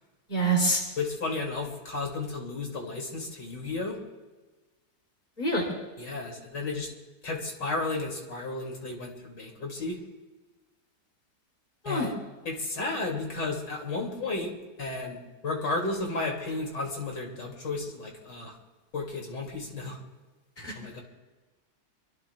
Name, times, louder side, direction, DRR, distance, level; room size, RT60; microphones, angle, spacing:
voice 1, 0.3-0.8 5.4-5.7 11.8-12.1 20.6-20.8, right 2 dB, 25° left, 0 dB, 3.1 m, -26 dB
voice 2, 1.0-4.0 6.0-6.9 7.2-10.0 11.9-12.1 12.4-14.5 14.8-18.5 18.9-20.0 20.7-21.0, left 3 dB, 80° left, 0 dB, 3.1 m, -33 dB
25.0 x 24.5 x 2.3 m, 1.2 s
omnidirectional pair, 1.9 m